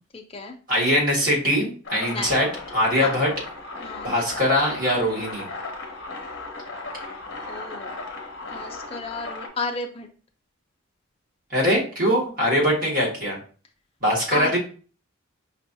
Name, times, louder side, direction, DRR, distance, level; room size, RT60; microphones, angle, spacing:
voice 1, 0.1-0.6 2.0-2.3 3.0-3.1 3.8-4.1 7.5-8.0 8.5-10.1 14.3-14.6, left 4 dB, 30° left, 3 dB, 0.5 m, -32 dB
voice 2, 0.7-3.3 4.0-5.5 11.5-13.4 14.0-14.6, equal, 40° right, -4 dB, 1.6 m, -22 dB
sound 1, 1.8-9.5, left 2 dB, 55° left, 0.9 m, -36 dB
5.3 x 2.5 x 2.7 m, 0.39 s
head